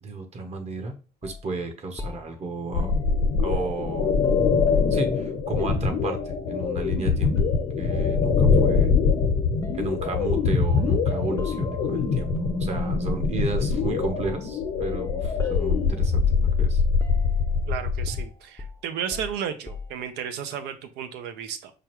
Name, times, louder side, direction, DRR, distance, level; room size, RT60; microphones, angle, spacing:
voice 1, 0.0-0.9 1.2-2.9 3.4-4.1 4.9-7.3 7.8-8.9 9.7-12.3 12.6-16.8, right 3 dB, 40° right, 5 dB, 0.9 m, -33 dB
sound 1, 1.2-1.4 2.0-4.6 4.9-6.4 6.8-7.0 7.3-8.2 9.1-9.3 9.6-12.2 13.7-14.0 14.2-16.7 17.0-17.6 18.1-20.0, left 4 dB, 15° left, 0.5 m, -40 dB
sound 2, 2.7-18.2, left 5 dB, 80° left, 1.0 m, -23 dB
voice 2, 17.7-21.7, right 8 dB, 90° right, 10 dB, 0.6 m, -33 dB
4.9 x 2.4 x 3.0 m, 0.34 s
cardioid pair, 110°, 17 cm